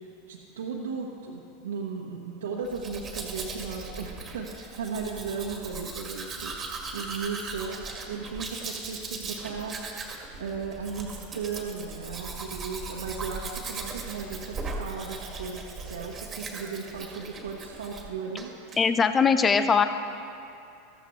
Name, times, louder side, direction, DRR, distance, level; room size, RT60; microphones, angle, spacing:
voice 1, 0.0-6.5 6.9-7.8 8.1-9.7 10.4-18.5, right 5 dB, 75° right, -3 dB, 1.1 m, -36 dB
Domestic sounds home sounds, 2.6-18.1 18.4-18.8, right 3 dB, 25° right, 1.9 m, -38 dB
voice 2, 18.8-19.8, left 5 dB, 25° left, 10 dB, 0.6 m, -21 dB
14.5 x 14.5 x 3.2 m, 2.6 s
hypercardioid pair, 85°, 0 cm